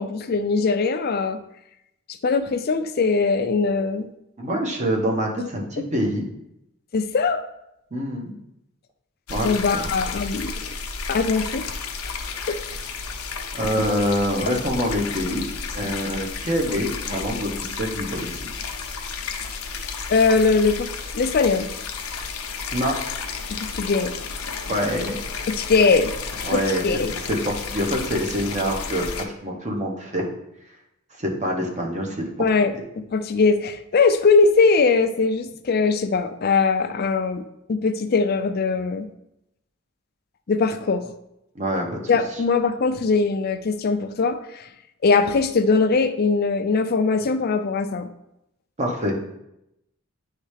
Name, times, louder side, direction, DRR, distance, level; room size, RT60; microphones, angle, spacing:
voice 1, 0.0-1.4 2.2-4.1 6.9-7.4 9.4-10.6 11.1-11.7 12.0-12.2 12.5-12.6 20.1-20.9 21.1-21.7 23.6-24.1 25.5-26.1 26.5-27.2 32.4-32.7 33.1-37.4 37.7-39.1 40.5-41.1 42.1-44.7 45.0-48.1, left 4 dB, 45° left, 8 dB, 0.4 m, -21 dB
voice 2, 4.4-6.2 7.9-8.3 9.3-10.0 13.5-15.5 15.7-18.5 22.7-23.0 24.7-25.2 26.4-27.0 27.3-30.3 31.2-32.3 41.5-41.9 48.8-49.1, equal, 35° right, 0 dB, 1.0 m, -25 dB
sound 1, 9.3-29.3, left 5 dB, 90° left, 0.7 m, -32 dB
9.5 x 3.2 x 3.3 m, 0.84 s
head